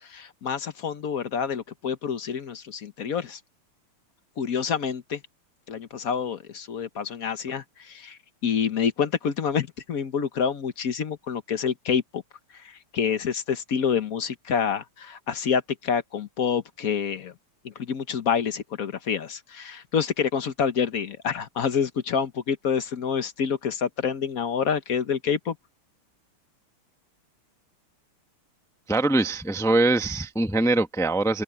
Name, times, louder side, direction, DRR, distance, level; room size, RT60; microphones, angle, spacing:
voice 1, 0.0-3.4 4.4-5.2 5.7-12.2 12.5-17.3 17.6-25.6, left 7 dB, 50° left, 1.2 m, -27 dB
voice 2, 28.9-31.4, right 2 dB, 5° left, 0.5 m, -23 dB
open air
omnidirectional pair, 2.4 m